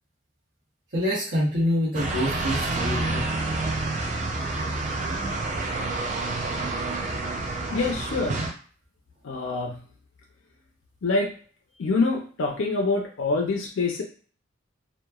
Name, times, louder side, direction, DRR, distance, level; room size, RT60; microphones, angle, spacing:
voice 1, 0.9-3.2, equal, 60° right, -9 dB, 0.9 m, -26 dB
sound 1, 1.9-8.5, right 2 dB, 35° right, 0.4 m, -28 dB
voice 2, 7.7-8.4 9.2-9.8 11.0-11.3 11.8-14.0, left 3 dB, 75° left, 0 dB, 0.5 m, -25 dB
2.9 x 2.2 x 2.3 m, 0.42 s
head